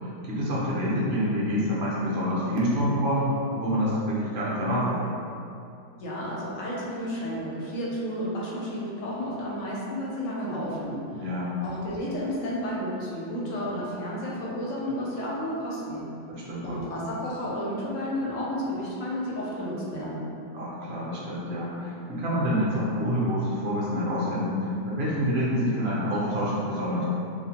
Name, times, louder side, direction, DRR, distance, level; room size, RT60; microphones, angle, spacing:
voice 1, 0.0-5.0 11.1-11.6 16.3-16.9 20.5-27.1, equal, 60° right, -7 dB, 0.7 m, -27 dB
voice 2, 6.0-11.2 11.6-16.1 16.6-20.2, equal, 70° left, -5 dB, 0.9 m, -32 dB
2.5 x 2.1 x 2.7 m, 2.5 s
omnidirectional pair, 1.4 m